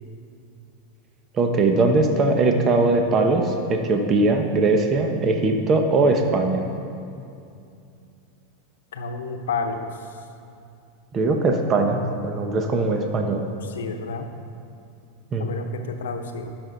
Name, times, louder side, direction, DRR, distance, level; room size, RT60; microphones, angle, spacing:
voice 1, 1.3-6.6 11.1-13.4 15.3-15.5, right 3 dB, 35° right, 4 dB, 0.9 m, -20 dB
voice 2, 8.9-9.9 13.6-14.3 15.4-16.5, left 4 dB, 85° left, 6 dB, 0.8 m, -30 dB
12.5 x 6.1 x 4.0 m, 2.5 s
hypercardioid pair, 110°, 0 cm